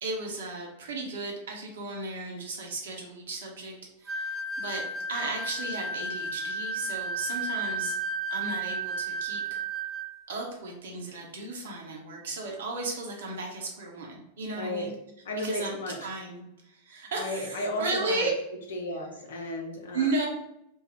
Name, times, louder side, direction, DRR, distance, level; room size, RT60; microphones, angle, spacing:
voice 1, 0.0-4.8 5.1-8.0 8.3-9.6 10.3-14.9 15.4-18.3 19.9-20.3, right 3 dB, 60° right, -1 dB, 0.8 m, -35 dB
sound 1, 4.1-10.1, right 2 dB, 20° right, 0.3 m, -33 dB
voice 2, 14.6-14.9 15.2-16.1 17.1-18.3 18.7-20.1, left 1 dB, 65° left, 2 dB, 0.7 m, -34 dB
2.6 x 2.3 x 4.1 m, 0.83 s
figure-of-eight pair, 90°, 0 cm